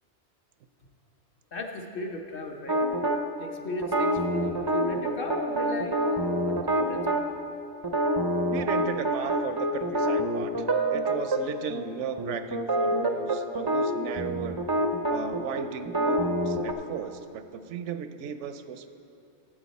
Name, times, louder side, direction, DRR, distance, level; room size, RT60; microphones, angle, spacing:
voice 1, 1.5-2.8 3.4-6.1 6.5-7.2, left 1 dB, 55° left, 2 dB, 0.9 m, -35 dB
sound 1, 2.7-3.2 3.8-7.2 7.8-11.4 11.7-11.9 12.2-16.7, right 1 dB, 40° right, 0.3 m, -26 dB
voice 2, 8.5-14.6 15.1-18.9, right 8 dB, 80° right, 9 dB, 0.9 m, -36 dB
12.5 x 7.8 x 4.1 m, 2.6 s
omnidirectional pair, 1.2 m